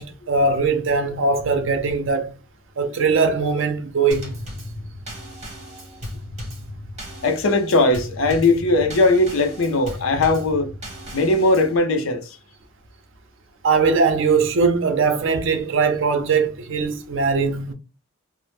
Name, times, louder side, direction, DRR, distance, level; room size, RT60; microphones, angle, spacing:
voice 1, 0.0-2.3 2.8-4.3 13.6-17.7, right 4 dB, 60° right, 0.5 m, -20 dB
Drum kit / Snare drum / Bass drum, 4.1-11.8, left 1 dB, 35° right, 1.0 m, -36 dB
voice 2, 7.2-10.7 11.1-12.4, left 2 dB, 75° left, 0.5 m, -19 dB
2.1 x 2.0 x 3.0 m
head